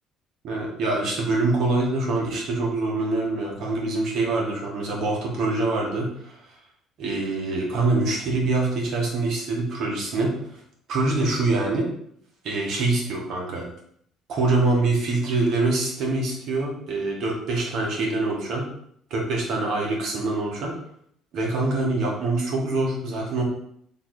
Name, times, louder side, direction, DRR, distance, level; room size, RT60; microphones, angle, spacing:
voice 1, 0.4-6.4 7.0-10.4 10.9-11.9 12.4-13.7 14.3-18.7 19.1-20.8 21.3-23.4, right 2 dB, 65° right, -1 dB, 1.5 m, -25 dB
3.6 x 3.0 x 4.7 m, 0.68 s
supercardioid pair, 75°, 0 cm